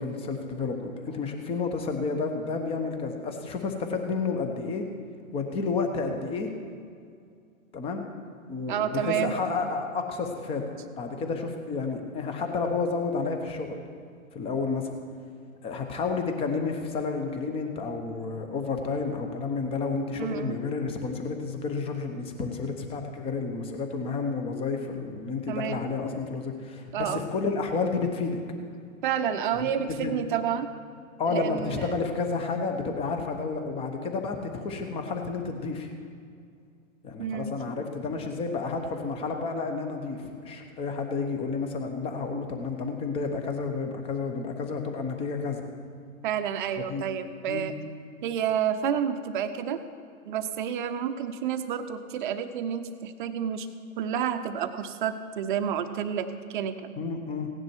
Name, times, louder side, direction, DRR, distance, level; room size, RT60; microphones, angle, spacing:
voice 1, 0.0-4.9 5.3-6.5 7.7-8.0 8.5-10.7 11.0-13.8 14.3-14.9 15.6-28.4 29.6-29.7 30.0-30.1 31.2-35.9 37.0-45.7 46.9-47.0 47.5-47.7 57.0-57.5, left 4 dB, 15° left, 5 dB, 0.9 m, -31 dB
voice 2, 8.7-9.4 20.2-20.6 25.5-25.9 26.9-27.3 29.0-30.7 31.3-31.9 37.2-37.6 46.2-47.7 48.2-49.8 50.2-53.7 54.0-56.8, right 8 dB, 35° right, 9 dB, 0.8 m, -29 dB
16.5 x 10.5 x 4.6 m, 2.3 s
hypercardioid pair, 135°, 41 cm